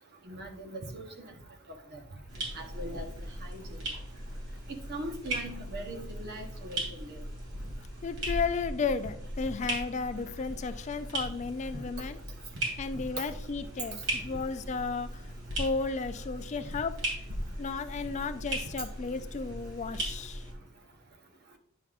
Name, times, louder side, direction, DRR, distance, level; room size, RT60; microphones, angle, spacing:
voice 1, 0.2-1.3 1.9-2.0 2.5-3.1 3.4-3.8 4.7-7.2 13.2-13.3 14.3-14.4, right 1 dB, 50° right, 3 dB, 1.1 m, -40 dB
sound 1, 2.3-20.5, right 1 dB, 80° right, 2.8 m, -38 dB
voice 2, 8.0-12.2 12.8-15.2 15.6-17.0 17.6-20.5, left 4 dB, 35° left, 11 dB, 0.3 m, -34 dB
9.4 x 5.4 x 2.5 m, 0.67 s
head